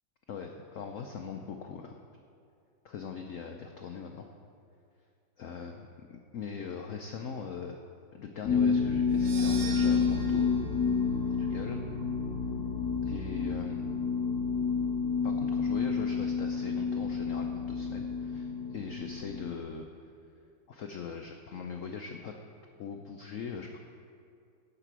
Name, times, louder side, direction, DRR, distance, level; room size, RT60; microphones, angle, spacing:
voice 1, 0.3-2.0 2.8-4.3 5.4-7.8 8.1-10.5 11.3-11.8 13.0-13.8 15.2-19.9 20.7-22.3 22.8-23.8, left 6 dB, 90° left, 3 dB, 0.7 m, -41 dB
sound 1, 8.4-19.6, left 5 dB, 55° left, 2.0 m, -29 dB
sound 2, 9.1-13.4, right 4 dB, 70° right, 1.9 m, -45 dB
15.0 x 5.0 x 6.0 m, 2.3 s
omnidirectional pair, 2.1 m